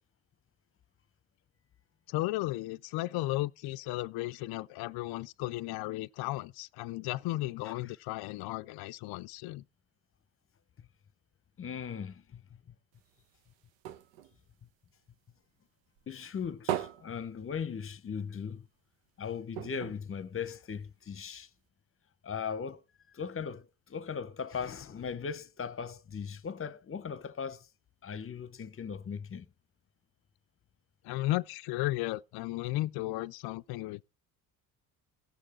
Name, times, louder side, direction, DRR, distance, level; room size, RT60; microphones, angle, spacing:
voice 1, 2.1-9.6 31.0-34.0, left 18 dB, 60° left, 0.5 m, -34 dB
voice 2, 11.6-12.4 12.7-12.8 16.1-18.7 19.2-21.5 22.2-22.8 23.1-27.7 28.0-29.5, left 6 dB, 30° left, 0.9 m, -38 dB
sound 1, 12.9-15.6 16.0-18.2 18.5-18.6 18.9-19.1 19.5-21.0 21.7-21.8, right 11 dB, 80° right, 0.9 m, -40 dB
16.5 x 6.5 x 4.3 m
hypercardioid pair, 65°, 43 cm